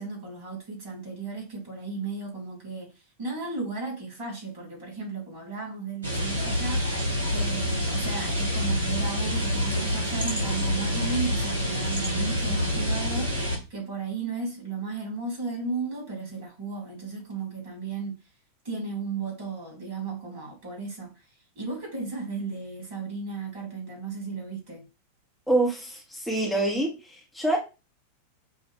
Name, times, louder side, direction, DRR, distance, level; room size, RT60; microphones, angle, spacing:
voice 1, 0.0-6.8 7.3-18.2 18.6-21.2 21.5-24.8, right 4 dB, 50° right, 3.0 m, -34 dB
sound 1, 6.0-13.6, equal, 75° right, 1.4 m, -27 dB
voice 2, 25.5-27.6, right 2 dB, 5° left, 1.2 m, -26 dB
5.4 x 2.7 x 3.5 m
figure-of-eight pair, 90°, 0 cm